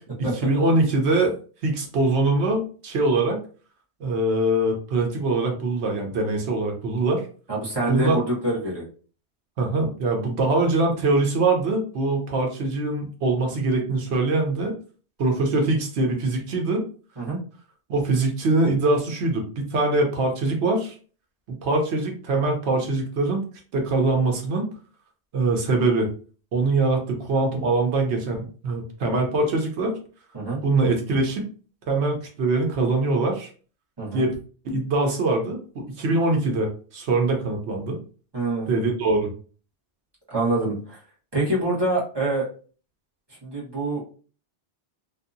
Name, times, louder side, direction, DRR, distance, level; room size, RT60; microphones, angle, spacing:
voice 1, 0.2-1.3 1.6-3.4 4.0-7.2 7.9-8.2 9.6-14.8 15.2-16.8 17.9-21.0 21.5-23.4 23.7-24.7 25.3-26.1 26.5-30.0 30.6-31.4 31.9-33.5 34.1-34.3 34.6-38.0 38.7-39.3, right 2 dB, 85° right, 2 dB, 1.0 m, -23 dB
voice 2, 7.5-8.8 17.2-17.4 30.3-30.6 34.0-34.3 38.3-38.7 40.3-41.0 41.3-42.5 43.4-44.0, right 2 dB, 25° right, -6 dB, 1.1 m, -25 dB
2.7 x 2.5 x 2.5 m, 0.39 s
omnidirectional pair, 1.1 m